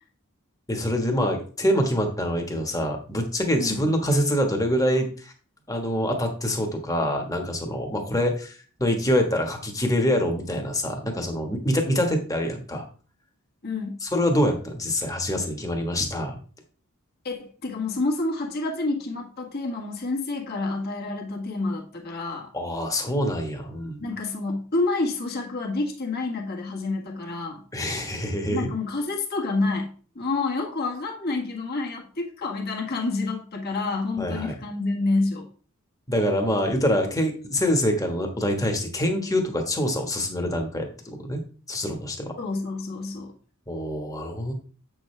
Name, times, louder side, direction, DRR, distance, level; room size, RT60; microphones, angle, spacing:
voice 1, 0.7-5.3 5.7-12.8 14.0-16.4 22.5-24.0 27.7-28.7 34.2-34.5 36.1-41.4 41.7-42.3 43.7-44.5, equal, 15° left, 3 dB, 1.4 m, -25 dB
voice 2, 13.6-14.0 17.2-22.5 24.0-27.6 28.5-35.5 42.4-43.3, left 3 dB, 50° left, 0 dB, 1.5 m, -28 dB
7.9 x 6.3 x 3.3 m, 0.39 s
head